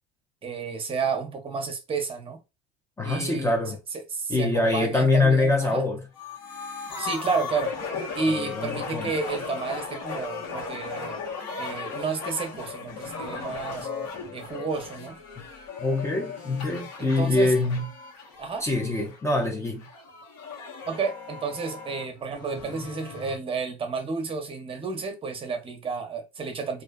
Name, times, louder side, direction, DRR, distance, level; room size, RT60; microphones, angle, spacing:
voice 1, 0.4-2.4 3.0-3.5 4.1-5.8 7.0-7.7 8.2-11.2 11.6-13.9 14.3-15.2 17.0-17.5 18.4-18.6 20.9-26.8, right 4 dB, 30° right, 0.7 m, -31 dB
voice 2, 3.0-3.8 4.3-6.0 8.3-9.1 15.4-15.5 15.8-17.9 18.6-19.9, left 2 dB, 15° left, 0.5 m, -24 dB
sound 1, 6.1-19.2 19.8-23.4, left 5 dB, 75° left, 1.1 m, -36 dB
2.4 x 2.2 x 2.4 m
supercardioid pair, 95°, 20 cm